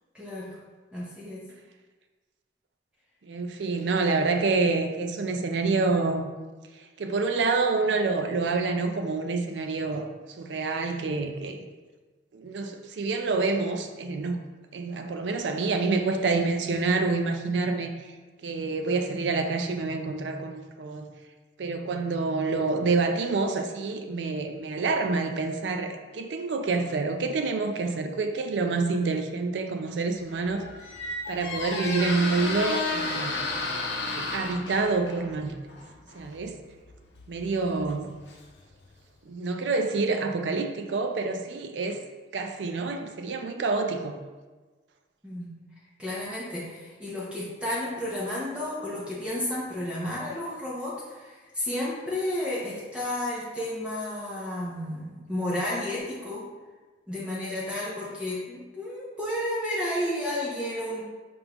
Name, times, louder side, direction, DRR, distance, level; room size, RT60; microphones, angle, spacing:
voice 1, 0.1-0.5 0.9-1.4 37.5-37.9 45.2-45.5 46.0-56.4 57.1-61.0, left 1 dB, 5° right, -7 dB, 0.7 m, -32 dB
voice 2, 3.2-6.3 7.0-11.7 12.3-14.4 14.7-17.9 18.4-21.1 21.6-30.6 31.3-33.4 34.1-35.7 36.1-36.6 37.3-38.1 39.3-42.0 42.3-44.2, right 3 dB, 80° right, 6 dB, 0.4 m, -27 dB
Squeak, 30.2-38.9, left 2 dB, 75° left, 0.7 m, -33 dB
5.1 x 3.5 x 2.9 m, 1.3 s
head